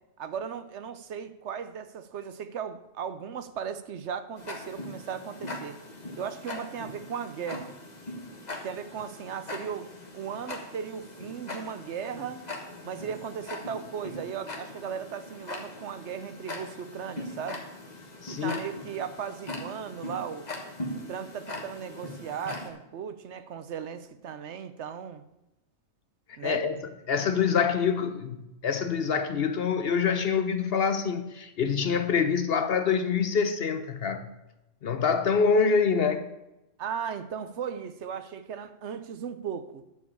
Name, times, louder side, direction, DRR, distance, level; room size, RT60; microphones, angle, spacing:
voice 1, 0.2-5.8 6.2-7.7 8.6-9.9 10.1-12.5 12.8-17.6 18.3-20.5 20.9-25.2 26.4-26.6 36.8-39.8, right 7 dB, 65° right, 0.9 m, -37 dB
Tick-tock, 4.4-22.7, left 2 dB, 35° left, 1.5 m, -41 dB
voice 2, 18.2-18.6 26.4-26.7 27.1-34.3 34.8-36.3, left 6 dB, 55° left, 0.8 m, -25 dB
11.0 x 4.9 x 8.3 m
omnidirectional pair, 1.4 m